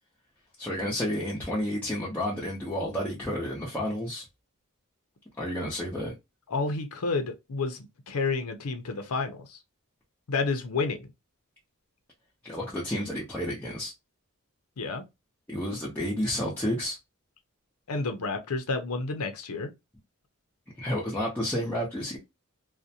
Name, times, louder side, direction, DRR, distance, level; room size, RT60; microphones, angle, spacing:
voice 1, 0.6-4.2 5.4-6.1 12.4-13.9 15.5-17.0 20.8-22.2, equal, 10° left, 0.6 m, -31 dB
voice 2, 6.5-9.6 10.3-11.1 14.8-15.0 17.9-19.7, left 3 dB, 90° left, 0.6 m, -30 dB
2.5 x 2.1 x 2.7 m
head